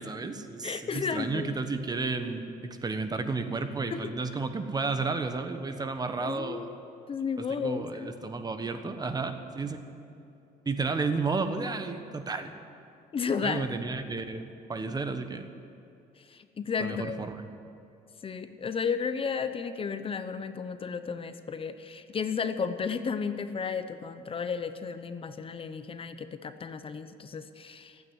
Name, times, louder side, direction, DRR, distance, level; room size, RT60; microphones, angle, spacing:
voice 1, 0.0-6.8 7.4-9.8 10.6-12.5 13.4-15.5 16.8-17.4, right 4 dB, 25° right, 8 dB, 1.2 m, -32 dB
voice 2, 0.6-1.6 3.9-4.1 6.2-6.8 7.1-8.1 13.1-13.7 16.3-17.2 18.2-28.0, left 6 dB, 35° left, 10 dB, 0.8 m, -33 dB
15.0 x 9.2 x 9.5 m, 2.7 s
cardioid pair, 110°, 17 cm